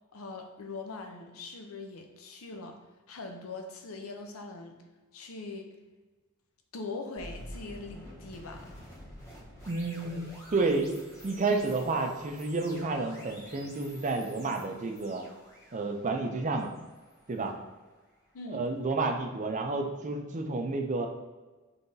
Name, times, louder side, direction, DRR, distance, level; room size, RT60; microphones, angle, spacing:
voice 1, 0.1-2.8 3.1-4.8 5.1-5.7 6.7-8.7 18.3-18.7, left 3 dB, 85° left, 4 dB, 0.6 m, -41 dB
sound 1, 7.2-18.2, equal, 15° left, 1.0 m, -49 dB
voice 2, 9.7-11.0 11.2-15.2 15.7-16.7 17.3-17.5 18.5-21.1, right 3 dB, 35° right, 4 dB, 0.5 m, -30 dB
5.4 x 3.4 x 2.7 m, 1.2 s
head